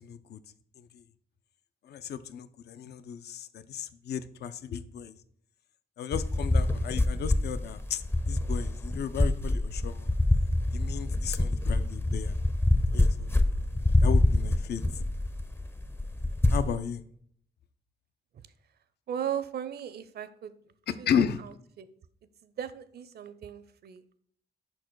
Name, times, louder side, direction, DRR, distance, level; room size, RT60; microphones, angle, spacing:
voice 1, 0.0-0.4 0.8-1.0 1.8-5.1 6.0-10.1 10.7-12.4 12.9-13.3 14.0-14.8 16.5-17.0 20.9-21.4, left 8 dB, 70° left, 13 dB, 0.5 m, -34 dB
sound 1, 6.1-16.8, left 1 dB, 15° left, 0.5 m, -26 dB
voice 2, 19.1-20.5 21.0-21.1 21.8-21.9 22.4-24.2, right 9 dB, 65° right, 13 dB, 0.6 m, -36 dB
5.8 x 4.4 x 4.5 m, 0.63 s
cardioid pair, 95°, 17 cm